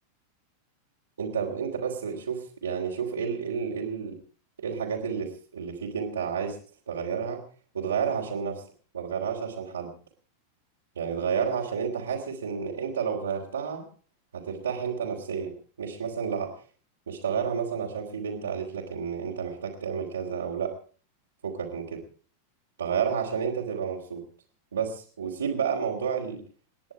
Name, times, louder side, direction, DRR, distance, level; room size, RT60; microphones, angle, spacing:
voice 1, 1.2-4.2 4.6-6.6 6.9-7.4 7.7-8.6 8.9-9.9 10.9-13.8 14.3-16.5 17.1-20.7 21.4-22.0 22.8-24.2 24.7-26.4, right 7 dB, 70° right, -5 dB, 3.3 m, -30 dB
29.0 x 10.5 x 4.8 m, 0.41 s
figure-of-eight pair, 90°, 0 cm